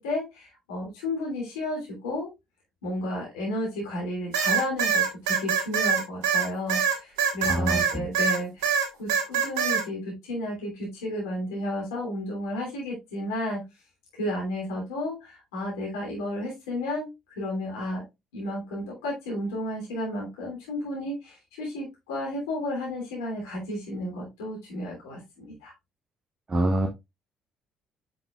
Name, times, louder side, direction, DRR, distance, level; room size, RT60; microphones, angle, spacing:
voice 1, 0.0-2.3 2.8-13.6 14.1-17.1 17.4-18.0 18.3-25.7, left 1 dB, 75° left, -3 dB, 3.0 m, -32 dB
sound 1, 4.3-8.4 8.6-9.8, right 6 dB, 70° right, 1.4 m, -24 dB
voice 2, 7.5-8.1 26.5-26.9, right 1 dB, 30° right, 3 dB, 1.3 m, -25 dB
7.7 x 6.0 x 2.4 m, 0.21 s
figure-of-eight pair, 50°, 2 cm